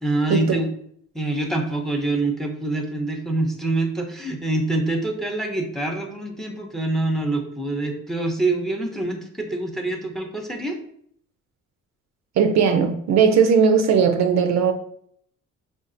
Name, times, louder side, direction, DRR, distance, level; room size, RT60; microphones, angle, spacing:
voice 1, 0.0-0.7 1.1-10.8, right 2 dB, ahead, 0.6 m, -25 dB
voice 2, 12.4-14.7, right 6 dB, 65° right, 0.5 m, -18 dB
5.1 x 2.4 x 2.5 m
cardioid pair, 90°, 30 cm